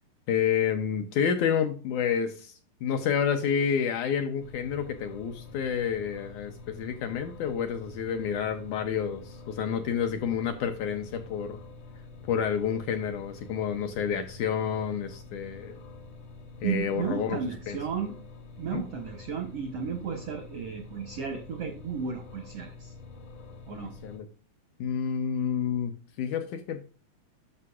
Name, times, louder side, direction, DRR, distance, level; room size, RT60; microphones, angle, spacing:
voice 1, 0.3-2.5 2.8-11.6 12.3-15.8 16.6-17.4 17.7-17.8 18.7-18.8 23.7-24.3 24.8-26.8, left 7 dB, 80° left, 6 dB, 1.9 m, -29 dB
sound 1, 4.4-24.2, left 3 dB, 60° left, 1.3 m, -47 dB
voice 2, 16.6-18.1 18.6-22.9 23.7-23.9, right 7 dB, 80° right, 4 dB, 1.3 m, -33 dB
9.5 x 6.2 x 2.4 m, 0.37 s
omnidirectional pair, 4.0 m